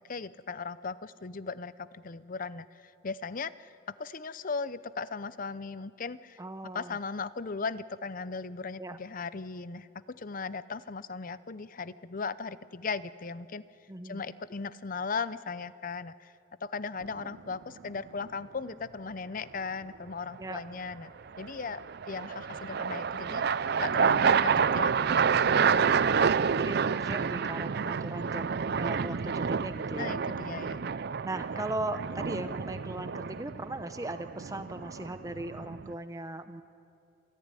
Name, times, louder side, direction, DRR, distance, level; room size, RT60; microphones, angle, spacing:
voice 1, 0.1-6.4 6.6-13.6 14.0-16.3 16.6-21.1 21.4-26.0 30.0-30.9, left 4 dB, 45° left, 15 dB, 0.6 m, -38 dB
voice 2, 6.4-7.0 8.8-9.0 13.9-14.2 20.4-20.6 26.0-30.2 31.2-36.6, right 2 dB, 15° right, 9 dB, 0.7 m, -38 dB
sound 1, 17.0-17.5 21.3-35.9, right 6 dB, 55° right, 0.5 m, -29 dB
27.5 x 14.5 x 9.9 m, 2.7 s
head